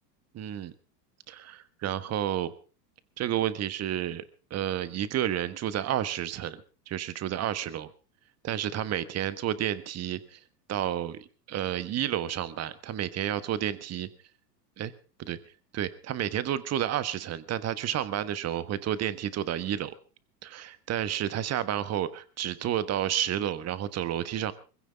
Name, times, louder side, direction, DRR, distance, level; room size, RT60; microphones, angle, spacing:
voice 1, 0.3-0.7 1.3-2.5 3.2-4.2 4.5-6.6 6.9-7.9 8.4-10.4 10.7-14.1 14.8-14.9 15.2-15.4 15.7-19.9 20.4-24.5, right 11 dB, 30° right, 14 dB, 1.4 m, -31 dB
22.5 x 16.0 x 3.6 m, 0.35 s
hypercardioid pair, 115°, 49 cm